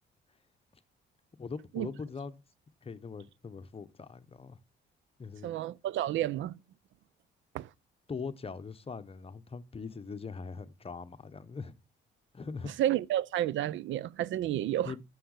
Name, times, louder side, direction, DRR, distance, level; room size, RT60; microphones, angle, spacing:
voice 1, 1.4-2.4 2.8-4.6 5.2-5.6 8.1-11.7 12.3-12.7 14.8-15.0, left 5 dB, 30° left, 1.0 m, -41 dB
voice 2, 5.4-6.6 7.5-7.7 12.8-14.9, right 12 dB, 75° right, 0.5 m, -30 dB
7.7 x 7.1 x 6.5 m
cardioid pair, 90°, 20 cm